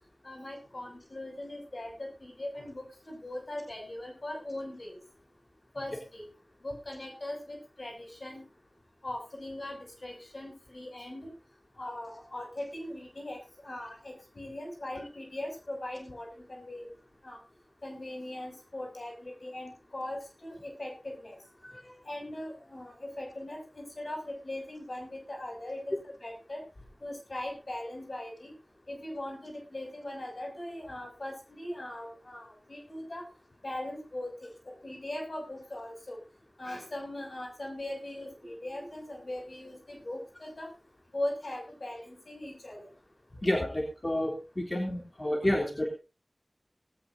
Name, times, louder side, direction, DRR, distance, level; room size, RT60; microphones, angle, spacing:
voice 1, 0.2-5.0 5.7-6.3 6.6-8.4 9.0-11.3 11.8-16.9 17.2-17.4 17.8-21.4 22.0-26.6 27.0-28.5 28.9-33.2 33.6-36.2 36.6-40.7 41.1-42.9, left 1 dB, 75° left, 2 dB, 6.4 m, -40 dB
voice 2, 43.4-45.9, left 1 dB, 45° left, -1 dB, 3.2 m, -30 dB
19.0 x 16.0 x 2.6 m, 0.31 s
wide cardioid pair, 50°, 0 cm